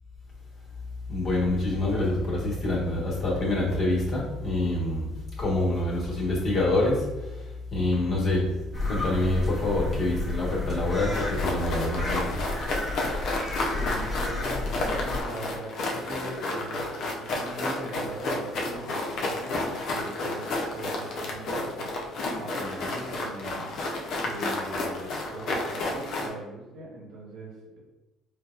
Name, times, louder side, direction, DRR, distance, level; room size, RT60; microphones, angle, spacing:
voice 1, 1.1-12.3, left 2 dB, 45° left, -4 dB, 1.3 m, -26 dB
sound 1, 8.7-15.2, left 2 dB, 10° left, 1.1 m, -32 dB
sound 2, 11.1-26.3, left 2 dB, 60° left, 0.6 m, -31 dB
voice 2, 13.7-23.7 24.2-27.8, right 1 dB, 90° right, -4 dB, 1.1 m, -40 dB
4.6 x 2.2 x 2.4 m, 1.1 s
cardioid pair, 105°, 0 cm